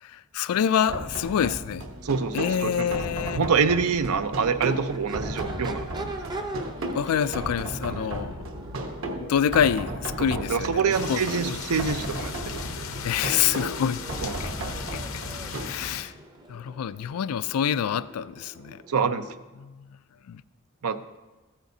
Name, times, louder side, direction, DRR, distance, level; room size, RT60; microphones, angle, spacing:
voice 1, 0.0-1.9 2.3-3.4 6.9-8.4 9.3-11.6 13.0-14.0 14.4-14.5 14.9-15.0 15.6-16.1 16.5-18.8 19.6-19.8 20.3-20.4, left 8 dB, 85° left, 16 dB, 0.3 m, -26 dB
sound 1, 0.9-15.7, right 1 dB, 65° right, 1.0 m, -35 dB
voice 2, 2.0-3.0 3.3-6.2 7.9-8.0 10.2-12.9 14.2-14.4 18.9-19.2 20.8-21.0, right 5 dB, 85° right, 11 dB, 0.5 m, -26 dB
Crowd / Race car auto racing / Accelerating revving vroom, 2.5-19.5, right 2 dB, 20° right, 0.5 m, -43 dB
sound 2, 10.9-16.0, left 6 dB, 70° left, 0.7 m, -37 dB
14.0 x 8.8 x 2.7 m, 1.2 s
head